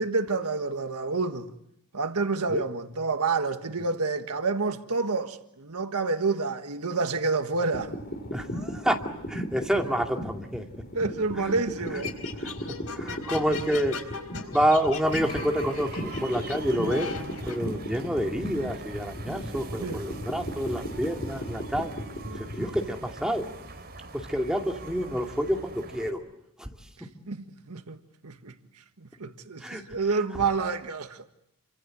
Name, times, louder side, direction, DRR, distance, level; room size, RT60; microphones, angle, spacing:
voice 1, 0.0-1.5 1.9-7.9 10.9-12.1 19.8-20.0 22.3-22.4 27.0-28.6 29.0-31.2, right 4 dB, 85° right, 1.6 m, -29 dB
sound 1, 7.7-23.0, equal, 45° left, 3.8 m, -37 dB
voice 2, 8.3-9.0 9.3-10.6 11.4-11.5 12.4-12.5 13.0-14.0 14.5-17.2 17.5-21.9 22.6-23.5 24.1-26.2 26.6-26.7 29.6-29.8, equal, 5° right, 2.5 m, -28 dB
sound 2, 11.9-17.6, left 5 dB, 85° left, 4.4 m, -39 dB
sound 3, 15.0-26.1, right 3 dB, 45° right, 4.5 m, -43 dB
29.0 x 25.5 x 7.8 m
head